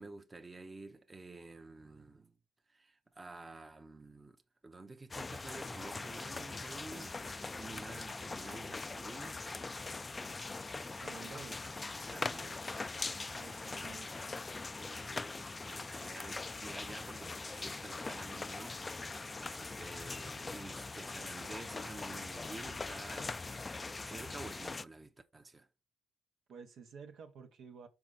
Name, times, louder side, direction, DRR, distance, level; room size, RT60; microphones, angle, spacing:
voice 1, 0.0-2.4 2.7-4.4 4.6-9.4 12.1-13.0 13.3-14.2 14.8-25.7, right 3 dB, 25° right, 0.9 m, -51 dB
sound 1, 5.1-24.9, left 3 dB, 25° left, 0.3 m, -42 dB
voice 2, 10.9-11.7 13.3-14.1 26.5-27.9, right 6 dB, 70° right, 1.1 m, -51 dB
5.9 x 5.0 x 3.9 m
cardioid pair, 90°, 0 cm